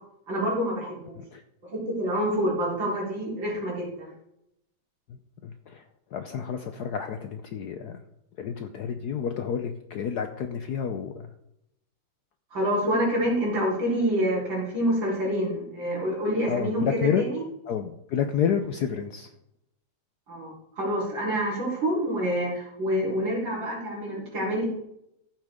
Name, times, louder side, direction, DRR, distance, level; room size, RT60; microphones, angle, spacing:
voice 1, 0.3-1.2 1.7-4.1 12.5-17.4 20.3-24.7, equal, 65° right, -5 dB, 4.9 m, -27 dB
voice 2, 5.1-5.8 6.1-8.0 8.4-11.3 16.5-17.2 17.7-19.3, left 7 dB, 65° left, 7 dB, 1.0 m, -30 dB
14.5 x 7.6 x 3.6 m, 0.80 s
omnidirectional pair, 2.3 m